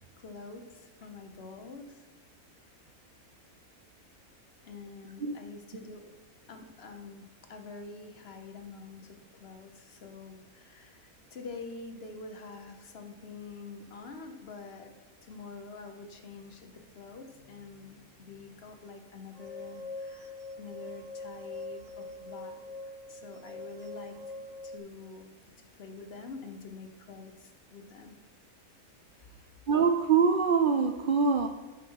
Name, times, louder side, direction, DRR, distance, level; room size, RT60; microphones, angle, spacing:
voice 1, 0.2-2.1 4.6-6.1 6.5-14.9 15.2-24.3 24.6-25.3 25.7-28.2, left 4 dB, 50° left, 6 dB, 1.0 m, -46 dB
sound 1, 19.4-24.8, left 2 dB, 40° right, 0.7 m, -43 dB
voice 2, 29.7-31.5, right 5 dB, 85° right, 6 dB, 0.4 m, -24 dB
12.0 x 5.7 x 4.6 m, 1.3 s
omnidirectional pair, 1.5 m